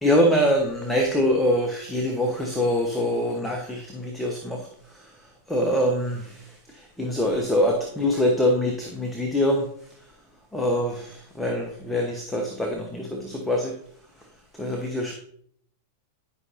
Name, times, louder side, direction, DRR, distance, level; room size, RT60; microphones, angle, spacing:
voice 1, 0.0-5.1 5.5-9.7 10.5-13.7 14.6-15.1, equal, 5° left, 1 dB, 1.1 m, -24 dB
11.0 x 5.4 x 2.7 m, 0.65 s
figure-of-eight pair, 95°, 0 cm